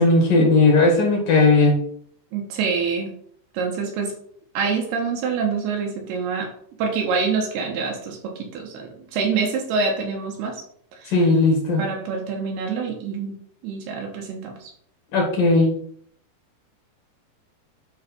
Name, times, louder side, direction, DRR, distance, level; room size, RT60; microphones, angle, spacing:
voice 1, 0.0-1.8 11.1-11.8 15.1-15.7, left 2 dB, 60° left, 0 dB, 2.8 m, -17 dB
voice 2, 2.3-3.1 3.5-4.1 4.5-6.5 6.8-10.6 11.0-11.3 11.8-13.4 13.6-14.7, right 5 dB, 70° right, 1 dB, 3.0 m, -26 dB
9.7 x 3.3 x 6.0 m, 0.62 s
omnidirectional pair, 5.1 m